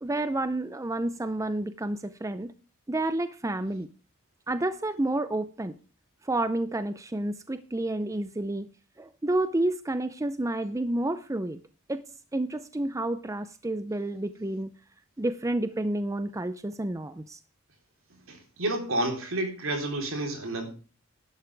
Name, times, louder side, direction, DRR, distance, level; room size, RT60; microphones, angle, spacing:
voice 1, 0.0-2.5 2.9-3.9 4.5-5.7 6.2-8.7 9.0-11.6 11.9-12.0 12.3-14.7 15.2-17.4, right 1 dB, 15° right, 0.5 m, -30 dB
voice 2, 18.3-20.7, right 1 dB, 65° right, 3.8 m, -30 dB
11.5 x 11.5 x 3.4 m
head